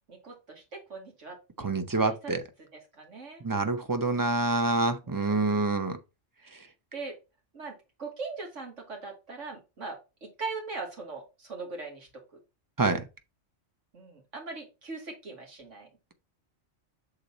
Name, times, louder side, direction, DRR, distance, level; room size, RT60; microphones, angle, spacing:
voice 1, 0.1-2.3 2.7-3.4 5.0-5.7 6.4-6.6 6.9-7.2 7.5-12.4 13.9-15.9, right 4 dB, 85° right, 2.5 m, -41 dB
voice 2, 1.6-2.4 3.4-6.0 12.8-13.0, right 3 dB, 20° right, 0.6 m, -27 dB
6.7 x 4.0 x 4.1 m
omnidirectional pair, 1.2 m